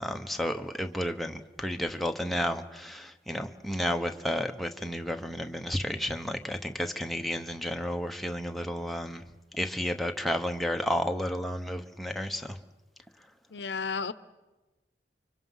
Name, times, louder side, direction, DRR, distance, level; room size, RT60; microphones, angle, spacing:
voice 1, 0.0-9.2 9.5-12.6, equal, ahead, 1.0 m, -32 dB
voice 2, 13.5-14.1, left 5 dB, 75° left, 0.9 m, -32 dB
29.5 x 25.0 x 5.7 m
head